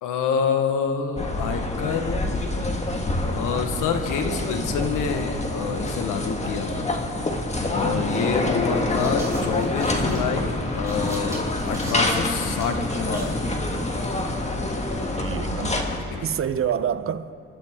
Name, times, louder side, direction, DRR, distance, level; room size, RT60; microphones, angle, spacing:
voice 1, 0.0-2.3 3.3-6.9 7.7-13.3 16.1-16.3, left 6 dB, 85° left, 1.4 m, -27 dB
sound 1, 1.2-16.0, left 2 dB, 20° left, 1.8 m, -26 dB
sound 2, 7.6-7.7 8.7-13.4, right 2 dB, 10° right, 4.4 m, -42 dB
voice 2, 7.8-8.3 15.2-15.9 16.2-17.3, right 8 dB, 45° right, 0.8 m, -28 dB
28.5 x 12.5 x 3.7 m
cardioid pair, 90°, 30 cm